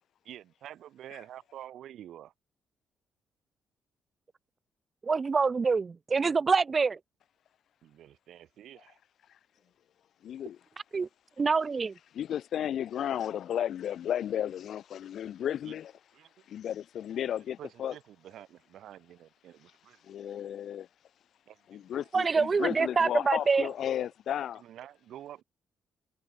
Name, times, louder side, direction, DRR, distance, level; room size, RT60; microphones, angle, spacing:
voice 1, 0.2-2.3 7.8-9.0 15.6-15.8 16.1-16.5 17.6-20.0 21.5-22.1 23.1-23.2 24.6-25.4, right 11 dB, 75° right, 5.4 m, -48 dB
voice 2, 5.0-7.0 10.9-11.1 11.4-11.9 22.1-23.6, right 4 dB, 35° right, 0.8 m, -26 dB
voice 3, 10.2-10.6 12.1-15.9 16.5-17.9 20.0-20.9 21.7-24.6, left 10 dB, 70° left, 0.7 m, -33 dB
cardioid pair, 90°, 0 cm